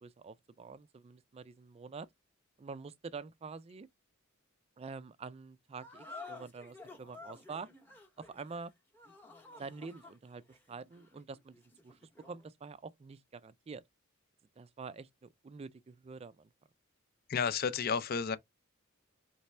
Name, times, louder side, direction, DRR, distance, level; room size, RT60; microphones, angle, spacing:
voice 1, 0.0-2.1 2.6-3.9 4.8-7.7 8.2-8.7 9.6-12.0 12.3-13.8 14.6-16.5, right 4 dB, 30° right, 0.3 m, -47 dB
sound 1, 5.8-12.5, left 3 dB, 10° left, 0.8 m, -52 dB
voice 2, 17.3-18.4, left 6 dB, 45° left, 0.4 m, -31 dB
4.2 x 3.3 x 3.2 m
head